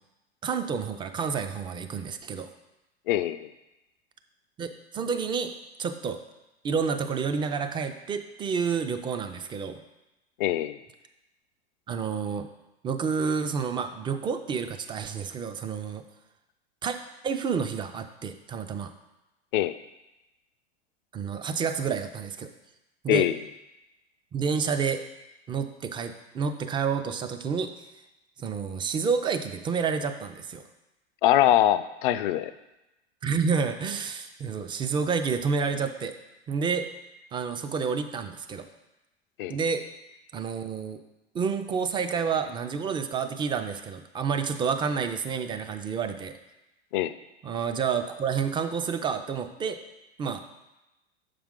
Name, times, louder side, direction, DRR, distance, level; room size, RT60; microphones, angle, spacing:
voice 1, 0.4-2.5 4.6-5.5 5.8-6.2 6.6-9.8 11.9-12.5 12.8-16.0 16.8-17.0 17.2-18.9 21.1-22.5 23.0-23.3 24.3-25.0 25.5-27.7 28.4-30.6 33.2-36.1 36.5-36.9 37.3-38.7 39.5-39.8 40.3-41.0 41.3-46.3 47.4-49.8 50.2-50.4, right 6 dB, 15° right, 8 dB, 0.4 m, -29 dB
voice 2, 3.1-3.5 10.4-10.8 19.5-19.7 23.1-23.4 31.2-32.5 39.4-39.6 46.9-47.1, left 13 dB, 55° left, 13 dB, 0.4 m, -23 dB
7.1 x 5.0 x 3.7 m, 0.98 s
hypercardioid pair, 100°, 32 cm